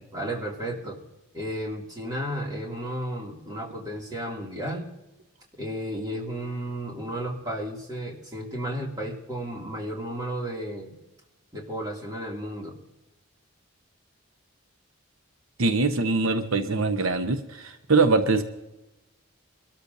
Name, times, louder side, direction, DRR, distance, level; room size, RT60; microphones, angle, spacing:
voice 1, 0.1-1.0 1.3-4.9 5.6-10.9 11.5-12.8, right 1 dB, 20° right, -2 dB, 2.5 m, -33 dB
voice 2, 15.6-18.4, right 3 dB, 80° right, 8 dB, 0.9 m, -23 dB
24.0 x 13.0 x 2.7 m, 0.97 s
head